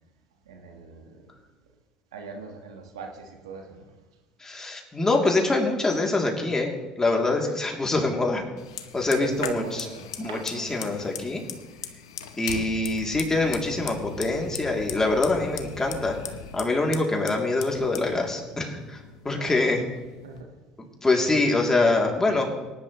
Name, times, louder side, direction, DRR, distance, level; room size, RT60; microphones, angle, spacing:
voice 1, 0.5-1.3 2.1-3.9 7.4-7.5 9.1-10.8 19.2-19.6 20.2-20.6, right 4 dB, 90° right, 3 dB, 1.6 m, -39 dB
voice 2, 4.4-8.5 8.9-9.8 10.2-11.4 12.4-16.2 16.5-19.0 19.2-19.8 21.0-22.5, left 2 dB, 20° left, 0 dB, 3.0 m, -24 dB
Fire, 8.6-20.4, left 8 dB, 90° left, 0.9 m, -39 dB
18.5 x 11.0 x 3.2 m, 1.2 s
hypercardioid pair, 70°, 3 cm